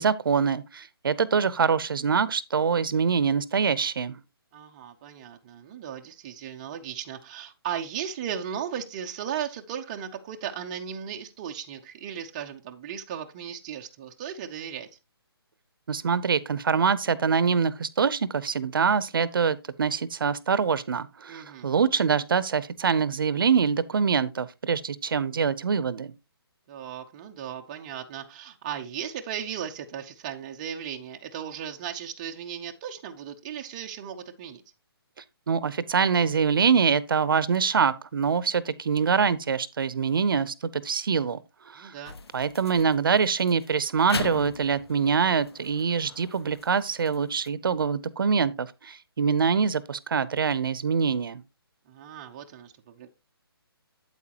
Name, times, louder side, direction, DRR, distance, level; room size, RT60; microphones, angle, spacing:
voice 1, 0.0-4.2 15.9-26.1 35.5-41.4 41.7-41.9 42.3-51.4, right 6 dB, 60° right, 0.7 m, -24 dB
voice 2, 4.5-14.9 21.3-21.7 26.7-34.6 41.8-42.1 51.9-53.1, right 9 dB, 20° right, 0.6 m, -36 dB
sound 1, 42.0-47.5, left 4 dB, 80° left, 0.9 m, -40 dB
8.4 x 8.3 x 2.9 m
hypercardioid pair, 165°, 13 cm